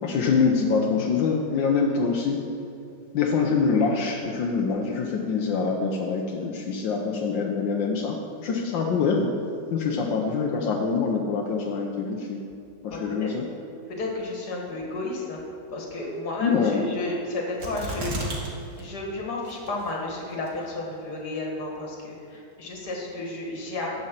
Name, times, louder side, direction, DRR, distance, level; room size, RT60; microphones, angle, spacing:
voice 1, 0.0-2.4 3.1-9.3 9.7-12.4 12.8-13.4 16.4-16.9, left 5 dB, 85° left, 0 dB, 1.6 m, -25 dB
voice 2, 12.9-13.3 14.0-15.4 15.7-18.2 18.8-24.0, left 2 dB, 60° left, -1 dB, 2.3 m, -32 dB
sound 1, 17.6-18.5 18.8-18.9 19.5-19.9 20.5-20.6, equal, 80° right, 2.5 m, -32 dB
10.5 x 5.4 x 7.5 m, 2.6 s
omnidirectional pair, 2.0 m